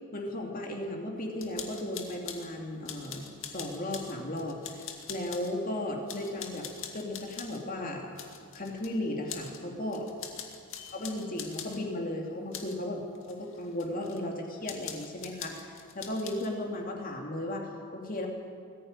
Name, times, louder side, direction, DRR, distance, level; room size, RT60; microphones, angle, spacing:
voice 1, 0.1-6.7 6.9-8.1 8.5-10.1 10.9-18.3, left 1 dB, 40° left, 1 dB, 2.8 m, -35 dB
sound 1, 1.4-2.5 2.9-5.5 6.1-7.6 8.2-8.9 9.3-9.6 9.9-11.8 12.5-12.8 13.1-14.2 14.6-16.5, left 8 dB, 60° left, 2.4 m, -43 dB
20.5 x 15.0 x 9.8 m, 2.2 s
head